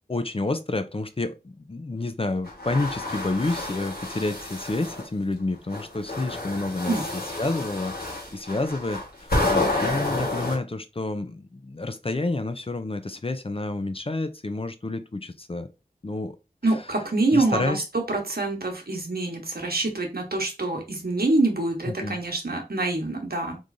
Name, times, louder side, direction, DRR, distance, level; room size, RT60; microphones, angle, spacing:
voice 1, 0.1-15.7 16.0-16.4 17.3-17.8 21.9-22.2, left 2 dB, 35° left, 0.5 m, -29 dB
sound 1, 2.4-5.1 5.7-10.5, left 2 dB, 65° left, 1.5 m, -29 dB
voice 2, 16.6-17.8 18.1-23.6, right 2 dB, 70° right, 1.1 m, -25 dB
3.7 x 3.1 x 2.5 m
wide cardioid pair, 40°, 17 cm